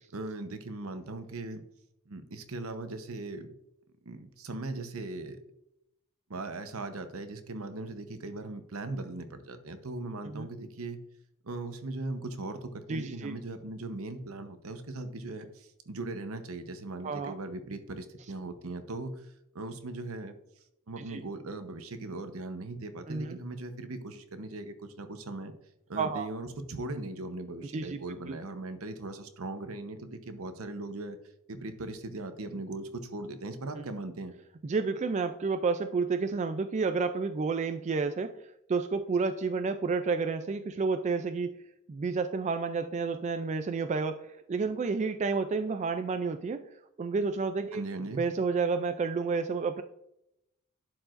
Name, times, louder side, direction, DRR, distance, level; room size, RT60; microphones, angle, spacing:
voice 1, 0.1-1.6 2.1-3.6 4.0-5.4 6.3-11.0 11.4-19.3 19.5-20.4 20.9-25.5 25.9-31.2 31.5-34.3 47.7-48.2, right 2 dB, 70° right, 9 dB, 0.9 m, -39 dB
voice 2, 12.9-13.3 17.0-17.3 21.1-21.2 23.1-23.4 26.0-26.3 27.7-28.0 28.3-28.4 34.6-38.3 38.7-41.5 41.9-44.2 44.5-46.6 47.0-47.8 48.2-49.8, right 4 dB, 30° right, 8 dB, 0.3 m, -30 dB
11.5 x 4.7 x 2.5 m, 0.82 s
head